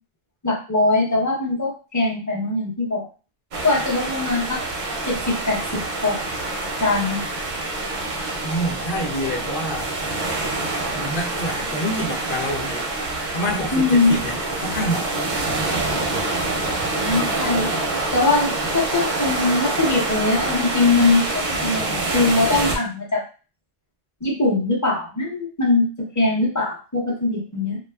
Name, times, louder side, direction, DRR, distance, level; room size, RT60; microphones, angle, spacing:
voice 1, 0.4-3.0 3.6-4.6 5.1-6.4 6.8-7.2 13.7-14.1 17.0-17.7 18.1-23.2 24.2-25.9 26.2-27.8, left 3 dB, 20° left, -3 dB, 0.6 m, -21 dB
sound 1, 3.5-22.8, right 2 dB, 55° right, 0.6 m, -26 dB
voice 2, 8.4-9.9 10.7-12.9 13.3-15.1, equal, 55° left, -1 dB, 0.8 m, -27 dB
2.6 x 2.3 x 2.2 m, 0.35 s
omnidirectional pair, 1.2 m